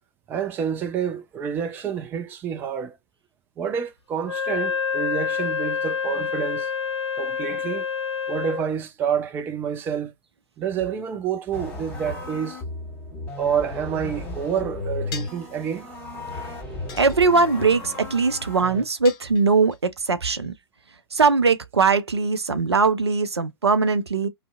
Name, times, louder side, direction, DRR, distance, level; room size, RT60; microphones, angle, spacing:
voice 1, 0.3-3.0 3.6-6.7 7.2-7.8 8.3-10.1 10.6-12.6 13.4-15.9, right 8 dB, 15° right, 0.4 m, -28 dB
Wind instrument woodwind instrument, 4.2-8.7, left 6 dB, 80° left, 0.6 m, -27 dB
sound 1, 11.5-18.8, left 2 dB, 10° left, 1.5 m, -35 dB
sound 2, 15.1-15.5 16.9-17.6 19.0-19.8, left 7 dB, 35° left, 0.7 m, -39 dB
voice 2, 17.0-20.5 21.1-24.3, right 4 dB, 80° right, 0.4 m, -20 dB
2.6 x 2.0 x 2.3 m
figure-of-eight pair, 105°, 14 cm